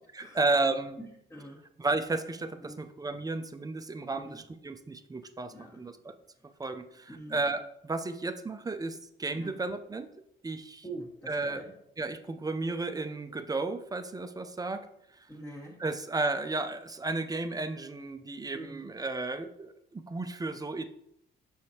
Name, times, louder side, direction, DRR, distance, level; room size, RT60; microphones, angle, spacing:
voice 1, 0.1-1.0 1.8-6.1 6.6-10.1 10.4-10.8 11.3-11.6 12.0-14.9 15.2-15.3 15.8-20.8, right 3 dB, 20° right, 8 dB, 0.5 m, -33 dB
voice 2, 1.0-1.6 2.6-2.8 4.1-4.4 5.5-5.8 7.1-7.4 9.3-9.6 10.8-11.7 15.3-15.8 18.5-18.9, right 1 dB, 10° left, -5 dB, 1.3 m, -44 dB
6.4 x 6.2 x 2.9 m, 0.76 s
cardioid pair, 90°, 20 cm